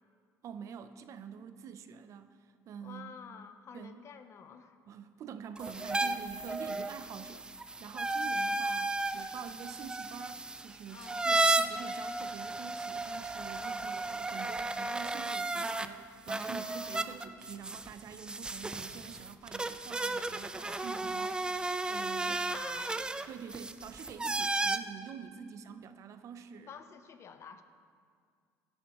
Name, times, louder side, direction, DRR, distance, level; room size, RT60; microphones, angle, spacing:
voice 1, 0.4-3.2 3.7-4.0 4.9-22.4 23.3-26.7, right 7 dB, 55° right, 11 dB, 0.6 m, -46 dB
voice 2, 2.8-4.8 5.8-6.1 6.5-6.7 7.9-8.0 10.9-11.2 13.6-13.8 16.5-17.2 20.6-21.3 22.0-23.1 26.7-27.6, left 7 dB, 45° left, 9 dB, 0.8 m, -50 dB
sound 1, 5.6-15.9 16.3-24.8, right 2 dB, 15° right, 0.5 m, -34 dB
16.0 x 12.0 x 3.1 m, 2.1 s
cardioid pair, 105°, 6 cm